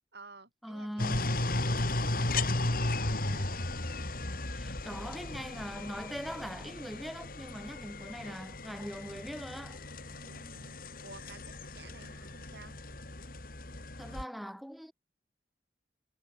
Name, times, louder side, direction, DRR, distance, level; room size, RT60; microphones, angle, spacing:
voice 1, 0.1-3.5 10.2-10.7 11.0-12.8, right 3 dB, 65° right, 4.7 m, -53 dB
voice 2, 0.6-1.3 4.5-9.8 14.0-14.9, equal, ahead, 2.4 m, -41 dB
sound 1, 1.0-14.2, left 2 dB, 55° left, 3.2 m, -35 dB
head